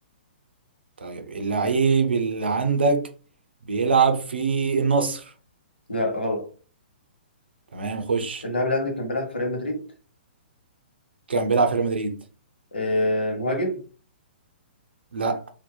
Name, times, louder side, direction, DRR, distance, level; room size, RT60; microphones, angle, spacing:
voice 1, 1.0-3.1 3.7-5.2 7.7-8.4 11.3-12.2 15.1-15.4, right 4 dB, 75° right, 0.5 m, -23 dB
voice 2, 5.9-6.5 8.4-9.8 12.7-13.8, left 1 dB, 80° left, 0.9 m, -25 dB
2.7 x 2.2 x 2.2 m
figure-of-eight pair, 120°, 6 cm